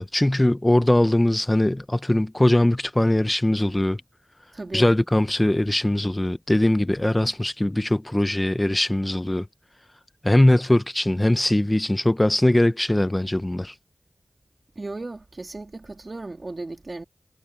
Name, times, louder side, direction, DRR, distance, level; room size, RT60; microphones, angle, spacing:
voice 1, 0.0-4.0 4.7-9.5 10.2-13.7, left 1 dB, 20° left, 0.9 m, -21 dB
voice 2, 4.5-4.9 14.7-17.0, right 2 dB, 50° right, 2.6 m, -35 dB
wide cardioid pair, 60°, 0 cm